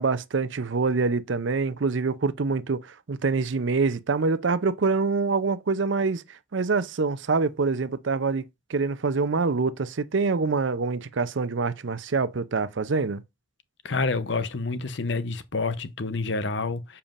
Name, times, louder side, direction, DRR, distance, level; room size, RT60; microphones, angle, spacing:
voice 1, 0.0-13.2, right 4 dB, 65° right, 0.6 m, -25 dB
voice 2, 13.8-17.0, left 3 dB, 60° left, 0.7 m, -28 dB
7.0 x 5.6 x 2.5 m
head